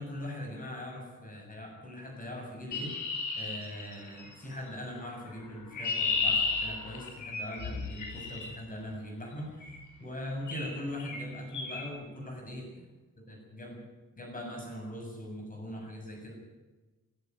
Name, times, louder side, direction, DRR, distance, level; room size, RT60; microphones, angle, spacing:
voice 1, 0.0-3.0 3.4-9.7 10.0-12.9 13.2-13.8 14.2-16.3, left 1 dB, 25° left, 1 dB, 7.4 m, -41 dB
Chirp tweet, 2.7-4.3 5.4-8.5 9.6-9.9 10.5-10.7 11.0-11.2 11.5-11.8, left 4 dB, 60° left, 5.4 m, -33 dB
18.0 x 17.0 x 9.7 m, 1.2 s
wide cardioid pair, 160°, 34 cm